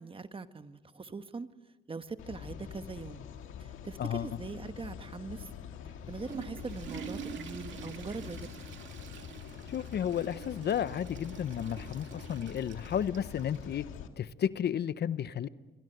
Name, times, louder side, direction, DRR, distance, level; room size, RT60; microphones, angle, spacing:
voice 1, 0.0-1.5 1.9-3.2 3.6-5.5 6.1-8.5, right 4 dB, 25° right, 10 dB, 1.3 m, -41 dB
sound 1, 2.2-14.1, left 8 dB, 85° left, 2.0 m, -45 dB
Water / Toilet flush, 5.9-13.7, right 8 dB, 70° right, 2.4 m, -47 dB
voice 2, 9.7-13.9 14.2-15.5, left 9 dB, 55° left, 15 dB, 0.8 m, -32 dB
28.5 x 23.5 x 7.9 m, 1.2 s
cardioid pair, 90°, 20 cm